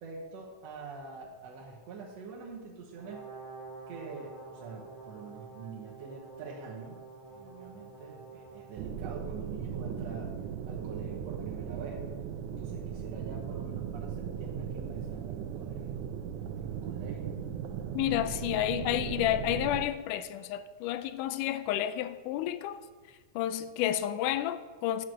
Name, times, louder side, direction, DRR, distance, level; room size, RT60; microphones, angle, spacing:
voice 1, 0.0-3.3 3.9-7.0 7.3-10.3 10.7-12.0 12.5-16.1 16.6-17.4, right 4 dB, 65° right, 2.1 m, -45 dB
Brass instrument, 2.9-8.8, right 4 dB, 25° right, 2.9 m, -48 dB
sound 1, 8.8-19.9, right 8 dB, 85° right, 2.1 m, -37 dB
voice 2, 17.9-22.8 23.4-25.1, left 12 dB, 85° left, 2.1 m, -30 dB
10.5 x 4.7 x 7.6 m
omnidirectional pair, 3.6 m